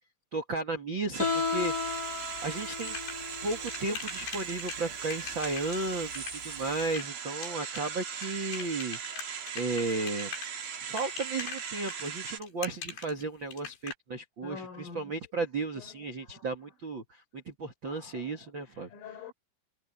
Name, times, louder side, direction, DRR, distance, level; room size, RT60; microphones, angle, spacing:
voice 1, 0.3-2.0 2.4-3.0 3.4-9.0 9.5-10.3 10.8-18.9, right 3 dB, 85° right, 1.0 m, -34 dB
sound 1, 1.1-12.4, right 7 dB, 50° right, 2.1 m, -39 dB
Guitar, 1.2-6.9, left 4 dB, 25° left, 2.4 m, -35 dB
sound 2, 2.4-13.9, left 6 dB, 55° left, 6.0 m, -42 dB
voice 2, 14.4-15.1 15.8-16.4 17.9-18.3 18.9-19.3, left 5 dB, 75° left, 7.9 m, -46 dB
omnidirectional pair, 5.9 m